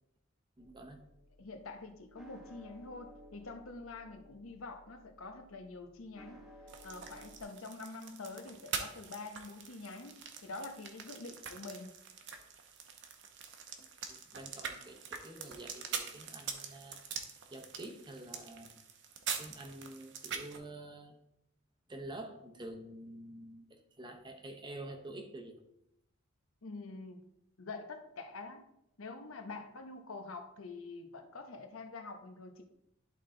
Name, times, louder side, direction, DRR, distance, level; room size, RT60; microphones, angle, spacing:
sound 1, 0.6-7.4, equal, ahead, 1.1 m, -57 dB
voice 1, 0.6-1.0 13.8-17.0 17.5-18.8 19.4-21.2 21.9-25.6, right 1 dB, 20° right, 5 dB, 0.8 m, -48 dB
voice 2, 1.4-6.4 6.8-10.2 10.4-11.9 26.6-27.2 27.6-28.6 29.0-32.6, left 3 dB, 85° left, 6 dB, 0.9 m, -46 dB
sound 2, 6.7-20.6, right 6 dB, 60° right, 0.8 m, -44 dB
11.0 x 3.8 x 3.8 m, 0.81 s
head